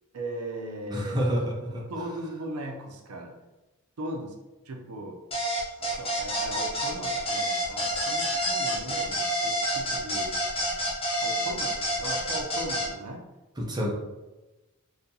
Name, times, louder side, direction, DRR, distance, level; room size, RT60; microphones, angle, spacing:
voice 1, 0.1-1.2 1.7-3.4 4.0-4.3 4.7-5.2 5.8-10.4 11.2-13.2, right 1 dB, 85° right, 2 dB, 0.5 m, -38 dB
voice 2, 0.9-1.9 13.6-13.9, equal, 20° right, -3 dB, 0.6 m, -28 dB
sound 1, 5.3-12.9, equal, 25° left, 0.8 m, -28 dB
3.9 x 2.7 x 2.7 m, 1.1 s
head